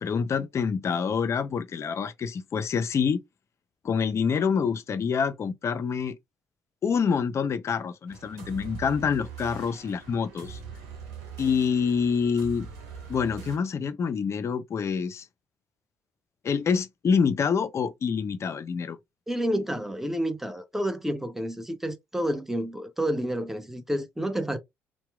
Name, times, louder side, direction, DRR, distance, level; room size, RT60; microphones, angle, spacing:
voice 1, 0.0-3.2 3.8-6.2 6.8-10.6 11.4-12.7 13.1-15.3 16.4-19.0, left 6 dB, 40° left, 0.4 m, -26 dB
sound 1, 8.1-13.6, right 6 dB, 75° right, 1.0 m, -42 dB
voice 2, 19.3-24.6, equal, 5° right, 0.7 m, -29 dB
2.8 x 2.1 x 2.2 m
hypercardioid pair, 50°, 7 cm